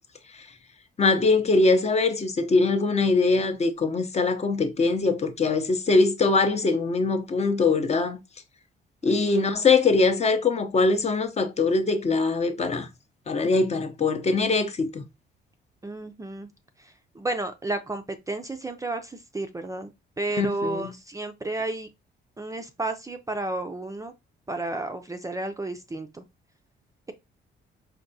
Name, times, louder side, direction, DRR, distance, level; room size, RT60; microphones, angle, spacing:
voice 1, 1.0-8.2 9.0-12.9 13.3-15.0 20.4-20.9, left 3 dB, 35° left, 0.6 m, -22 dB
voice 2, 9.1-9.6 15.8-16.5 16.8-19.9 20.2-21.9 22.4-24.1 24.5-26.2, right 2 dB, 15° right, 0.4 m, -32 dB
4.6 x 2.2 x 2.6 m
cardioid pair, 90°, 20 cm